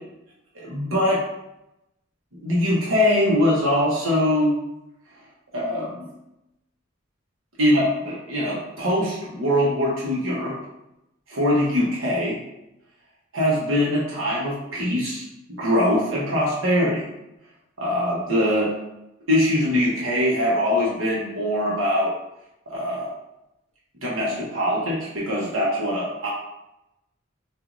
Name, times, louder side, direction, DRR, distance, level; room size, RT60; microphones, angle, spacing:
voice 1, 0.5-1.2 2.4-4.5 5.5-6.1 7.6-10.6 11.3-12.4 13.3-15.2 15.6-17.0 17.8-18.7 19.3-22.1 22.7-23.1 24.0-26.3, left 1 dB, 90° right, -6 dB, 1.1 m, -22 dB
5.9 x 2.6 x 2.6 m, 0.88 s
head